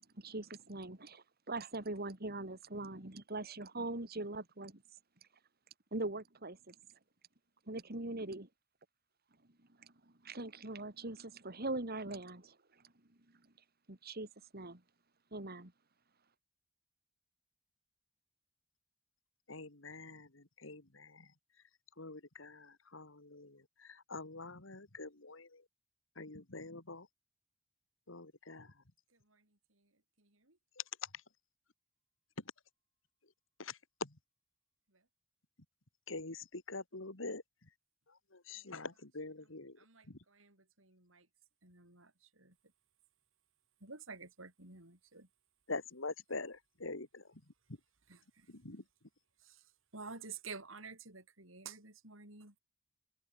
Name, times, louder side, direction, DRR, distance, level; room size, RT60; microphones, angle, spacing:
voice 1, 0.2-4.8 5.9-6.7 7.7-8.5 9.8-9.9 10.2-12.6 13.9-14.8 15.3-15.7, right 2 dB, 50° right, 3.2 m, -42 dB
voice 2, 19.5-21.3 22.0-25.6 26.2-27.1 28.1-28.7 33.6-34.1 36.1-37.4 38.3-39.8 40.1-40.2 45.7-47.2 48.5-48.8, left 3 dB, 75° left, 2.7 m, -45 dB
voice 3, 29.1-30.6 34.9-35.1 38.5-38.9 39.4-41.3 41.6-42.6 43.8-45.3 48.1-48.5 49.4-52.6, right 4 dB, 85° right, 7.5 m, -52 dB
head